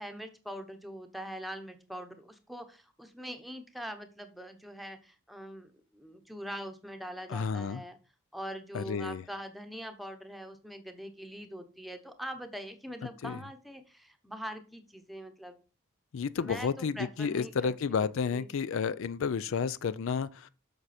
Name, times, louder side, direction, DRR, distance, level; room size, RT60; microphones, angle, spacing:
voice 1, 0.0-8.0 8.3-15.6 16.4-17.7 18.0-18.5, equal, ahead, 0.9 m, -43 dB
voice 2, 7.3-7.8 8.7-9.2 13.2-13.4 16.1-20.5, left 6 dB, 65° left, 0.4 m, -31 dB
8.0 x 6.1 x 4.3 m
head